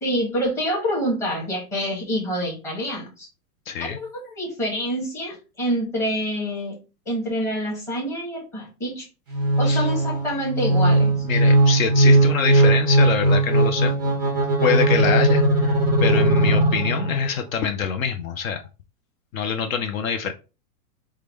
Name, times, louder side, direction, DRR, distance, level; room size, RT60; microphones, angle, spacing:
voice 1, 0.0-3.3 3.8-6.8 7.1-9.1 9.6-11.1, equal, 5° left, 0.8 m, -27 dB
voice 2, 3.7-4.0 9.6-9.9 11.2-13.9 14.6-18.6 19.3-20.3, left 7 dB, 55° left, 0.5 m, -25 dB
sound 1, 9.3-17.3, right 1 dB, 15° right, 0.3 m, -18 dB
4.7 x 2.2 x 3.4 m
supercardioid pair, 165°, 49 cm